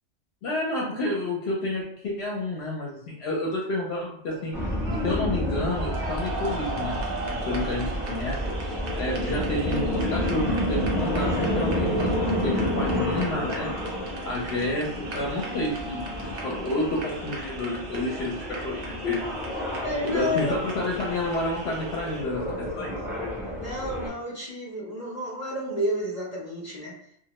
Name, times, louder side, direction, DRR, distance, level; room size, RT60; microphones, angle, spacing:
voice 1, 0.4-4.6 5.0-7.0 7.3-8.5 9.0-13.7 14.2-19.6 20.0-23.4, left 1 dB, 70° left, -3 dB, 0.8 m, -30 dB
sound 1, 4.3-22.2, right 2 dB, 60° right, 0.8 m, -38 dB
sound 2, 4.5-24.1, equal, 5° right, 0.5 m, -30 dB
voice 2, 19.8-20.6 23.5-27.0, equal, 50° left, -5 dB, 0.5 m, -30 dB
2.2 x 2.0 x 2.9 m, 0.70 s
omnidirectional pair, 1.2 m